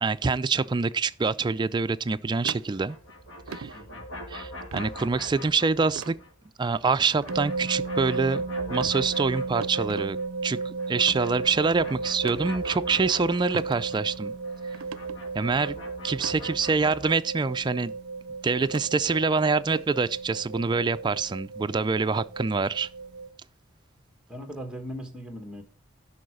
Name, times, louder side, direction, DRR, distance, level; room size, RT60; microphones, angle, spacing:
voice 1, 0.0-3.0 3.5-3.7 4.3-6.2 6.6-10.2 10.4-14.3 15.3-15.8 16.0-17.9 18.4-22.9, right 4 dB, 20° right, 0.3 m, -25 dB
sound 1, 2.4-3.1 3.5-3.7 4.7-4.9 6.0-6.2 7.2-7.4 7.9-8.3 8.7-9.0 9.6-10.1 11.0-11.2 12.2-12.5 13.5-13.8 14.2-14.3 14.7-15.2 16.1-16.4 17.4-17.5 18.6-18.8 19.8-19.9, right 6 dB, 85° right, 0.4 m, -39 dB
sound 2, 2.7-6.3 6.6-10.3 10.6-17.1, left 1 dB, 70° left, 2.0 m, -43 dB
sound 3, 7.3-23.3, right 4 dB, 55° right, 0.7 m, -35 dB
voice 2, 24.3-25.6, equal, 5° right, 1.4 m, -38 dB
12.0 x 5.5 x 4.8 m
head